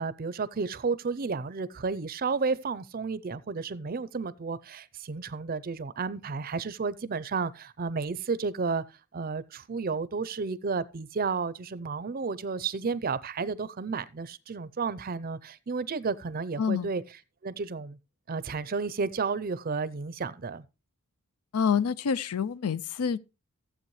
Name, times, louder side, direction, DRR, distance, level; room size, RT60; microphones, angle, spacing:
voice 1, 0.0-8.8 9.1-17.0 17.4-18.0 18.3-20.6, right 4 dB, 40° right, 0.5 m, -32 dB
voice 2, 16.6-16.9 21.5-23.2, left 6 dB, 85° left, 0.5 m, -27 dB
15.0 x 7.7 x 3.1 m
head